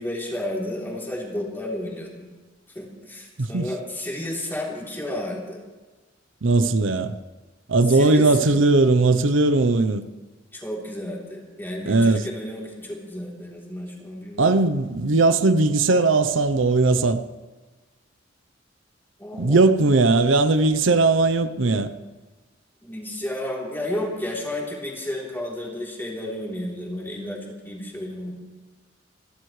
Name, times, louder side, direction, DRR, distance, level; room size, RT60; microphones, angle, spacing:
voice 1, 0.0-2.2 2.7-5.6 7.9-8.6 10.5-14.6 19.2-19.7 22.8-27.4 27.6-28.3, left 1 dB, 10° left, 3.4 m, -32 dB
voice 2, 6.4-7.2 7.7-10.0 11.9-12.3 14.4-17.2 19.4-21.9, right 3 dB, 80° right, 0.7 m, -19 dB
28.0 x 12.5 x 3.3 m
head